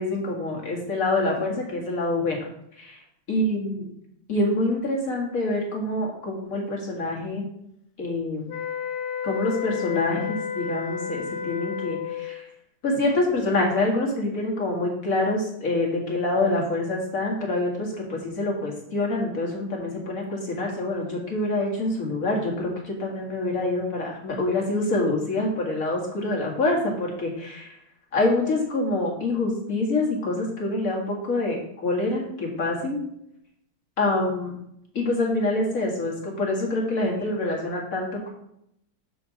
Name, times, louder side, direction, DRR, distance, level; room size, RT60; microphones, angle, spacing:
voice 1, 0.0-2.4 2.7-3.0 3.3-3.9 4.3-7.4 8.0-8.6 9.2-12.5 12.8-27.8 28.1-33.0 34.0-34.5 34.9-38.3, left 2 dB, 45° left, -1 dB, 2.1 m, -26 dB
sound 1, 8.5-12.4, left 8 dB, 60° left, 1.0 m, -31 dB
6.2 x 4.6 x 6.3 m, 0.76 s
omnidirectional pair, 2.2 m